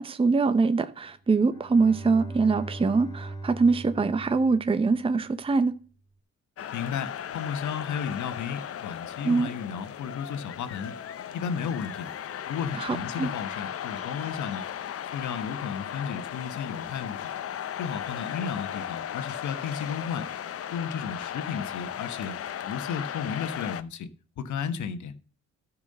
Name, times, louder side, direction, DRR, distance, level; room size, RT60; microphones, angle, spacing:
voice 1, 0.0-5.7 9.2-9.5 12.8-13.3, right 4 dB, 20° right, 0.7 m, -23 dB
Bowed string instrument, 1.4-5.4, right 2 dB, 15° left, 2.0 m, -40 dB
sound 1, 6.6-23.8, left 9 dB, 50° left, 0.8 m, -36 dB
voice 2, 6.7-11.0 11.3-12.1 12.5-14.6 15.1-17.3 17.8-20.3 20.7-22.3 22.6-24.1 24.4-25.2, left 7 dB, 70° left, 1.4 m, -33 dB
12.5 x 4.8 x 6.8 m
cardioid pair, 90°, 30 cm